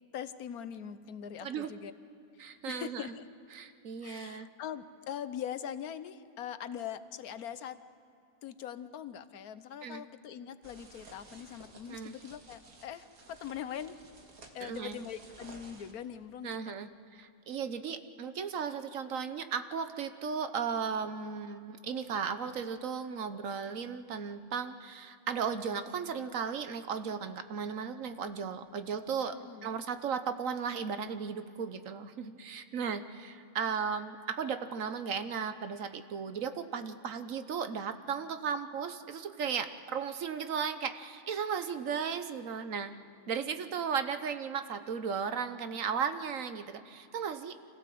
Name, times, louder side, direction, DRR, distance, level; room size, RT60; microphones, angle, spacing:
voice 1, 0.1-1.9 2.4-3.3 4.0-7.8 8.4-14.0 14.5-16.6 29.3-29.7, left 9 dB, 90° left, 12 dB, 1.3 m, -42 dB
voice 2, 1.4-1.7 2.4-3.1 3.5-4.5 9.8-10.0 11.9-12.2 14.6-15.1 16.4-42.9 43.3-47.6, right 6 dB, 65° right, 10 dB, 1.3 m, -36 dB
sound 1, 10.6-15.9, right 3 dB, 80° right, 2.3 m, -55 dB
25.5 x 16.5 x 7.7 m, 2.7 s
omnidirectional pair, 1.5 m